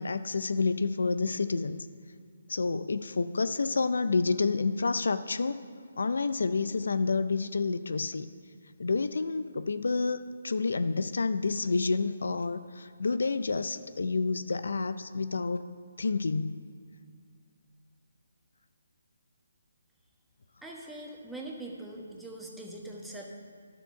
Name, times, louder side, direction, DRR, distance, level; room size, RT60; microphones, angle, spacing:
voice 1, 0.0-1.9 2.5-5.6 6.0-8.3 8.8-15.6 16.0-16.6, left 4 dB, 75° left, 12 dB, 0.5 m, -29 dB
voice 2, 20.6-23.3, right 1 dB, ahead, -3 dB, 1.3 m, -42 dB
11.0 x 7.3 x 5.7 m, 2.1 s
hypercardioid pair, 155°, 0 cm